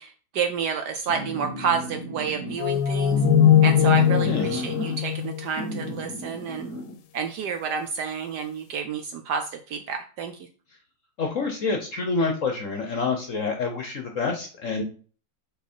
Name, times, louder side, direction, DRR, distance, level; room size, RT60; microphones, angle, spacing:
voice 1, 0.0-3.2 3.6-6.7 7.1-10.3, right 6 dB, 70° right, 7 dB, 1.0 m, -29 dB
sound 1, 1.1-2.6 3.1-5.2 5.6-7.0, equal, 40° right, 1.9 m, -32 dB
sound 2, 2.6-6.0, left 9 dB, 70° left, 1.3 m, -20 dB
voice 2, 4.2-4.6 11.2-14.8, left 4 dB, 55° left, 4 dB, 1.0 m, -27 dB
5.9 x 4.1 x 4.3 m, 0.40 s
omnidirectional pair, 2.2 m